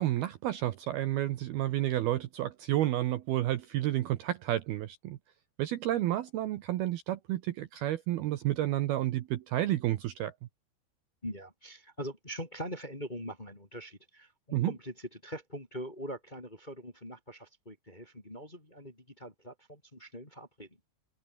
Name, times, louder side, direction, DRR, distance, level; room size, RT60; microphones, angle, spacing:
voice 1, 0.0-5.2 5.6-10.3 14.5-14.7, right 14 dB, 70° right, 2.5 m, -30 dB
voice 2, 11.2-20.7, equal, 10° left, 2.5 m, -42 dB
open air
omnidirectional pair, 5.4 m